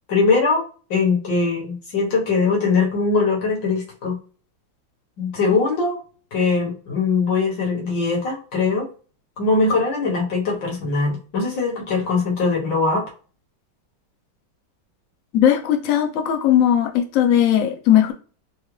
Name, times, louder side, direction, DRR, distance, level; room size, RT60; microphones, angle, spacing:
voice 1, 0.1-0.6 0.9-4.2 5.2-6.0 6.3-8.9 9.4-13.1, left 4 dB, 60° left, -2 dB, 1.9 m, -21 dB
voice 2, 15.3-18.1, left 10 dB, 90° left, 4 dB, 0.7 m, -18 dB
4.8 x 2.2 x 3.2 m, 0.38 s
omnidirectional pair, 2.3 m